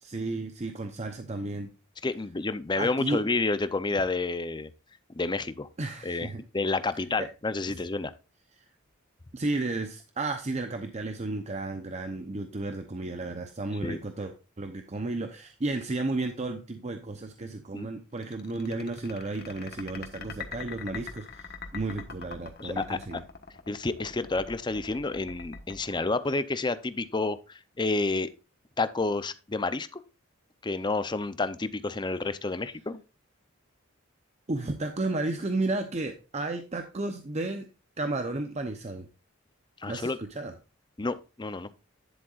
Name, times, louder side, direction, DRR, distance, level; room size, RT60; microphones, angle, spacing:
voice 1, 0.0-1.7 2.7-3.2 5.8-6.4 7.7-7.8 8.6-8.7 9.3-23.2 34.5-37.7 38.0-39.1 39.9-40.5, right 2 dB, 35° right, 0.7 m, -33 dB
voice 2, 2.0-4.7 5.1-5.7 6.0-6.3 6.5-8.1 13.8-14.0 17.7-17.9 22.6-23.0 23.7-28.3 28.8-30.0 30.6-33.0 39.8-40.2 41.0-41.7, left 3 dB, 20° left, 0.6 m, -29 dB
sound 1, 18.2-26.8, left 5 dB, 50° left, 1.2 m, -43 dB
10.5 x 7.7 x 2.4 m
head